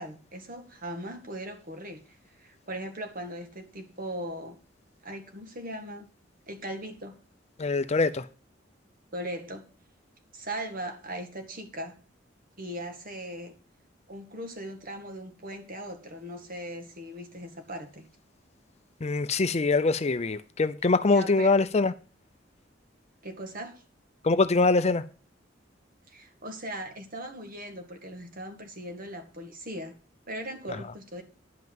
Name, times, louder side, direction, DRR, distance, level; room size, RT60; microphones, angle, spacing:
voice 1, 0.0-2.0 2.4-4.6 5.0-6.1 6.5-7.2 9.1-9.6 10.3-11.9 12.6-13.6 14.1-18.1 21.1-21.6 23.2-23.8 26.1-30.0 30.3-31.2, right 1 dB, 50° right, 1.9 m, -39 dB
voice 2, 7.6-8.3 19.0-21.9 24.2-25.0, left 3 dB, 35° left, 0.5 m, -23 dB
10.5 x 5.6 x 7.8 m
head